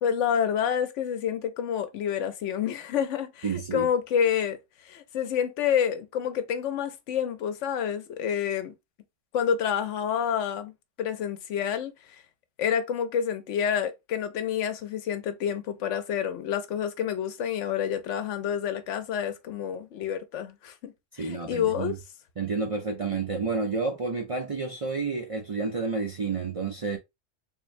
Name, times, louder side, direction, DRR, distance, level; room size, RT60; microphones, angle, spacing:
voice 1, 0.0-4.6 4.8-8.7 9.3-12.2 12.6-21.9, left 8 dB, 80° left, 1.0 m, -28 dB
voice 2, 3.4-3.9 21.2-22.0 22.4-27.0, right 4 dB, 45° right, 0.4 m, -30 dB
3.7 x 2.6 x 3.1 m
omnidirectional pair, 1.2 m